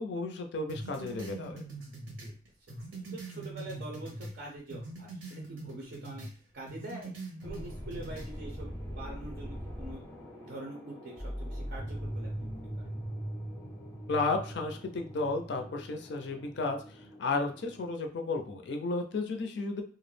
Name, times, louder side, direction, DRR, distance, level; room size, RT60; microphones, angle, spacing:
voice 1, 0.0-1.6 14.1-19.8, left 3 dB, 65° left, 5 dB, 0.4 m, -33 dB
sound 1, 0.7-4.4 4.7-6.3 6.7-8.3, right 2 dB, 90° right, 0.7 m, -43 dB
voice 2, 3.1-6.3 6.5-7.1 7.4-13.0, right 2 dB, 55° right, -1 dB, 0.5 m, -45 dB
sound 2, 7.4-17.9, equal, 10° left, 0.6 m, -41 dB
2.3 x 2.0 x 3.1 m, 0.41 s
head